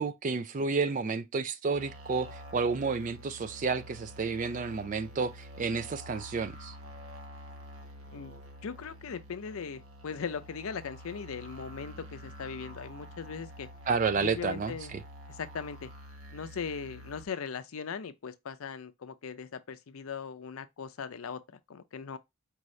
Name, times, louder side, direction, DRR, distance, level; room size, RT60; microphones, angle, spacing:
voice 1, 0.0-6.7 13.9-14.7, right 4 dB, 35° right, 0.3 m, -31 dB
sound 1, 1.7-17.3, equal, 80° right, 0.8 m, -48 dB
voice 2, 8.1-13.7 14.1-14.9 15.3-15.9 16.3-22.2, left 6 dB, 80° left, 0.5 m, -39 dB
4.6 x 2.7 x 3.1 m
head